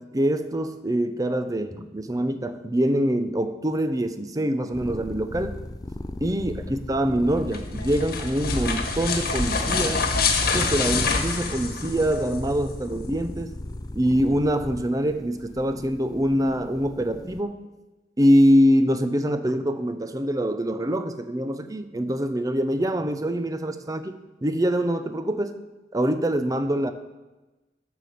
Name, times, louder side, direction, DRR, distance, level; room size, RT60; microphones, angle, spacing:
voice 1, 0.1-5.7 6.2-10.1 10.5-13.5 13.9-17.7 18.2-25.6 25.9-26.9, equal, 20° right, 9 dB, 0.6 m, -24 dB
sound 1, 4.7-17.4, left 1 dB, 20° left, 0.5 m, -37 dB
sound 2, 7.4-12.4, left 4 dB, 55° left, 1.4 m, -26 dB
9.8 x 6.7 x 6.9 m, 1.1 s
head